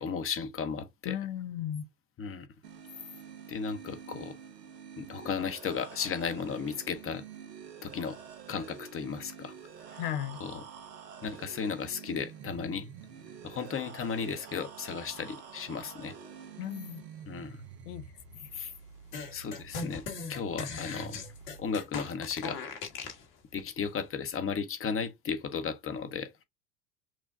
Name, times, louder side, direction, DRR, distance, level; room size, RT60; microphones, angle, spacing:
voice 1, 0.0-1.1 2.2-2.5 3.5-4.3 5.0-7.2 7.8-8.2 8.5-9.5 10.4-10.6 11.2-12.9 13.4-16.1 17.3-17.6 18.5-18.7 19.3-20.0 20.3-21.2 21.6-22.6 23.5-26.3, left 6 dB, 25° left, 0.9 m, -35 dB
voice 2, 1.0-1.8 10.0-10.4 16.6-17.0 17.8-18.0 18.3-18.5, left 11 dB, 75° left, 0.8 m, -35 dB
sound 1, 2.6-21.7, right 7 dB, 85° right, 1.1 m, -48 dB
sound 2, 19.1-23.2, left 4 dB, 50° left, 1.6 m, -39 dB
6.1 x 2.2 x 2.6 m
hypercardioid pair, 75°, 48 cm